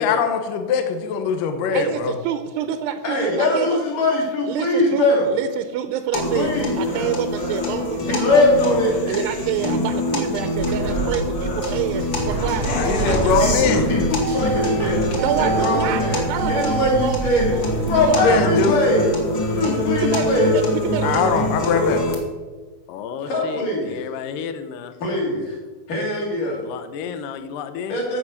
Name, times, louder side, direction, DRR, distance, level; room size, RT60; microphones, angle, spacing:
voice 1, 0.0-2.1 12.8-13.8 18.2-18.8 21.0-22.0, left 5 dB, 65° left, 6 dB, 2.3 m, -21 dB
voice 2, 1.7-3.8 4.5-8.4 9.1-13.5 15.1-17.7 18.1-18.2 20.0-21.3 23.3-23.4, right 10 dB, 85° right, 9 dB, 2.6 m, -28 dB
voice 3, 3.0-5.3 6.3-6.8 8.1-9.2 12.7-13.5 13.9-15.0 15.2-17.6 17.9-19.1 19.5-20.6 23.3-23.9 25.0-25.6 25.9-26.6 27.9-28.2, left 1 dB, 50° left, -1 dB, 4.2 m, -21 dB
sound 1, 6.1-22.1, left 1 dB, 35° left, 2.1 m, -24 dB
sound 2, 10.6-18.3, right 4 dB, 60° right, 0.7 m, -27 dB
voice 4, 22.9-24.9 26.6-28.0, left 7 dB, 85° left, 9 dB, 1.9 m, -32 dB
16.0 x 6.2 x 6.5 m, 1.3 s
omnidirectional pair, 5.0 m